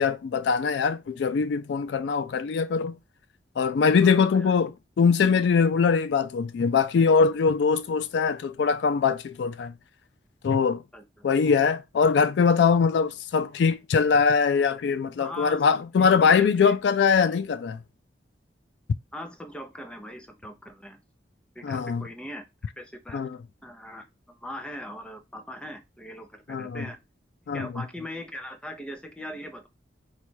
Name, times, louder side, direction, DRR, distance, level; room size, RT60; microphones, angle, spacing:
voice 1, 0.0-2.9 3.6-9.7 10.4-10.8 11.2-17.8 21.6-22.0 23.1-23.3 26.5-26.8 27.5-27.7, left 5 dB, 75° left, 0.3 m, -22 dB
voice 2, 3.9-4.5 10.9-11.3 15.2-15.7 16.0-16.8 19.1-21.0 21.5-22.4 22.8-23.2 23.6-27.0 27.5-29.7, equal, 5° left, 0.6 m, -40 dB
4.0 x 2.3 x 4.5 m
head